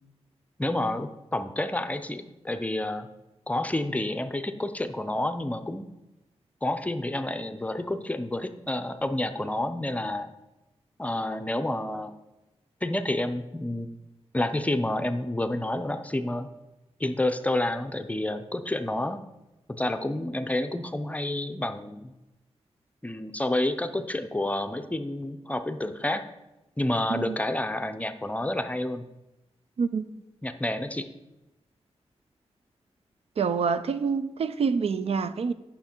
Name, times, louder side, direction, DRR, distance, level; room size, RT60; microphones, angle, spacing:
voice 1, 0.6-3.1 3.5-5.9 6.6-10.3 11.0-12.1 12.8-13.9 14.3-16.5 17.0-19.2 19.7-22.1 23.0-26.2 26.8-29.0 30.4-31.1, left 1 dB, 15° left, 0.5 m, -29 dB
voice 2, 33.4-35.5, right 5 dB, 65° right, 0.4 m, -26 dB
9.5 x 5.7 x 4.4 m
wide cardioid pair, 100°, 11 cm